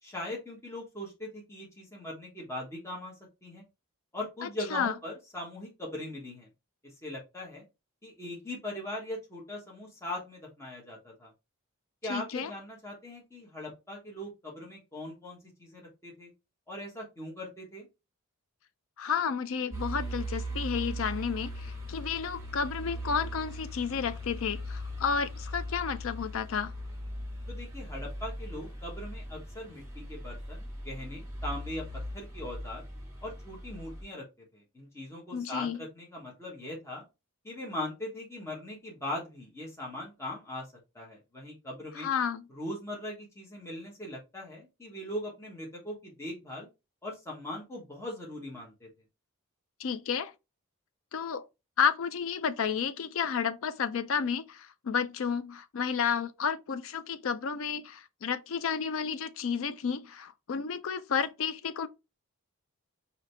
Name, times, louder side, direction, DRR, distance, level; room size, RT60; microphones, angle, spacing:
voice 1, 0.0-3.6 4.1-6.5 7.0-7.6 8.0-11.3 12.0-16.3 16.7-17.9 27.5-31.8 32.1-32.8 33.2-34.2 34.5-37.0 37.4-40.7 40.9-42.1 42.5-46.7 47.0-48.9, left 1 dB, 10° left, 1.2 m, -40 dB
voice 2, 4.4-4.9 12.1-12.5 19.0-26.7 35.3-35.8 41.9-42.5 49.8-50.3 51.1-51.5 51.8-61.9, left 6 dB, 60° left, 0.4 m, -31 dB
sound 1, 19.7-34.0, equal, 15° right, 1.4 m, -39 dB
5.0 x 2.8 x 3.3 m
head